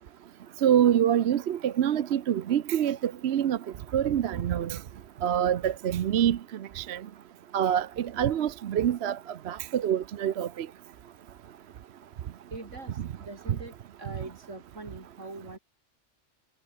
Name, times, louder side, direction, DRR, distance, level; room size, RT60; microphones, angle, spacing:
voice 1, 0.6-3.6 3.9-4.8 5.2-6.4 6.8-7.0 7.5-9.2 9.5-10.7 13.0-13.1, right 10 dB, 65° right, 0.9 m, -25 dB
voice 2, 12.5-15.6, right 2 dB, 85° right, 4.6 m, -43 dB
omnidirectional pair, 1.2 m